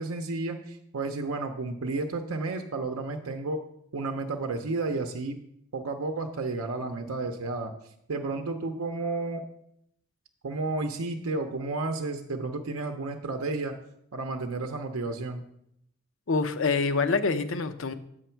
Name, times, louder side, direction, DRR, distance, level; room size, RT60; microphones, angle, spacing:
voice 1, 0.0-3.6 3.9-5.4 5.7-7.7 8.1-9.4 10.4-13.7 14.1-15.4, right 3 dB, 85° right, 4 dB, 0.6 m, -32 dB
voice 2, 16.3-17.9, left 4 dB, 65° left, 10 dB, 0.6 m, -26 dB
7.8 x 6.3 x 4.5 m, 0.74 s
head